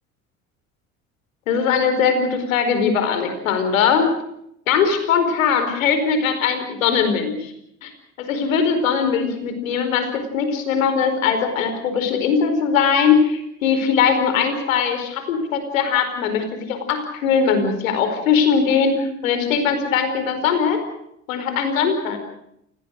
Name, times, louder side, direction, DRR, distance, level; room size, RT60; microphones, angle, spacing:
voice 1, 1.5-4.1 4.7-7.5 7.8-7.9 8.2-20.8 21.3-22.2, left 6 dB, 75° left, 8 dB, 4.8 m, -20 dB
29.0 x 19.0 x 6.6 m, 0.75 s
hypercardioid pair, 65°, 40 cm